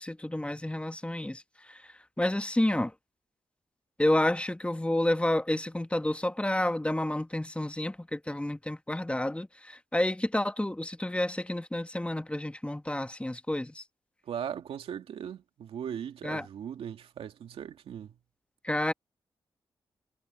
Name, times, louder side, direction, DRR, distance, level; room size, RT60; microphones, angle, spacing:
voice 1, 0.0-1.4 1.7-1.8 2.2-2.9 4.0-13.8 16.2-16.5 18.6-18.9, left 1 dB, 10° left, 1.5 m, -30 dB
voice 2, 14.3-18.2, right 8 dB, 85° right, 2.5 m, -38 dB
supercardioid pair, 45°, 10 cm